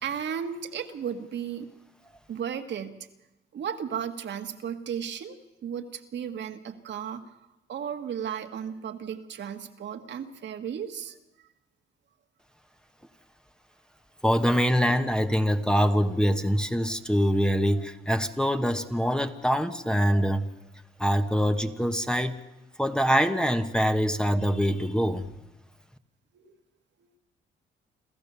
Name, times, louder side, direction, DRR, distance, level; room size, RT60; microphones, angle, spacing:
voice 1, 0.0-1.7 2.3-3.1 3.5-7.4 7.7-11.2 26.3-26.5 27.0-27.1, right 8 dB, 65° right, 6 dB, 1.7 m, -35 dB
voice 2, 14.2-20.4 21.0-22.4 22.8-25.3, equal, 5° left, 8 dB, 1.3 m, -24 dB
27.5 x 14.0 x 6.9 m, 0.99 s
cardioid pair, 90°, 20 cm